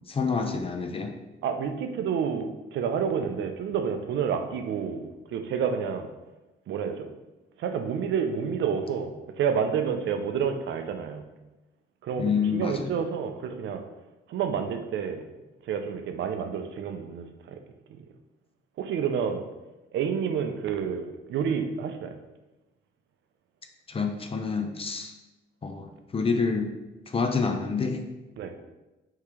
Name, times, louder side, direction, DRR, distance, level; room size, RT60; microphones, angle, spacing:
voice 1, 0.1-1.2 12.2-12.9 23.9-25.1 25.6-26.8 27.1-28.0, left 5 dB, 30° left, 5 dB, 0.5 m, -28 dB
voice 2, 1.4-6.1 6.7-7.1 7.6-11.2 12.0-12.2 12.5-13.8 14.3-15.2 15.7-17.6 18.8-19.4 19.9-22.1 28.4-28.5, right 7 dB, 70° right, 6 dB, 0.5 m, -29 dB
3.7 x 2.8 x 4.8 m, 1.0 s
cardioid pair, 90°, 20 cm